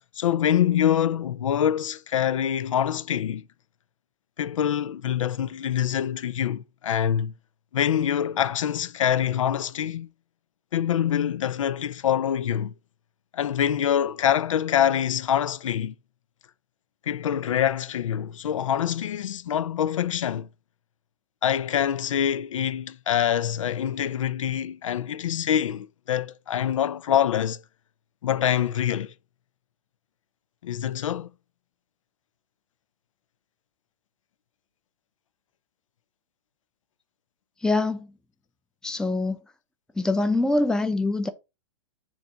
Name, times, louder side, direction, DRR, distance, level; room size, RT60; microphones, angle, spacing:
voice 1, 0.1-3.4 4.4-7.3 7.7-10.1 10.7-12.7 13.3-15.9 17.1-20.5 21.4-27.6 28.2-29.1 30.6-31.3, left 9 dB, 90° left, 0.5 m, -25 dB
voice 2, 37.6-38.1 38.8-39.4 40.0-41.3, left 2 dB, 5° left, 0.6 m, -24 dB
7.0 x 2.7 x 5.7 m
hypercardioid pair, 140°, 16 cm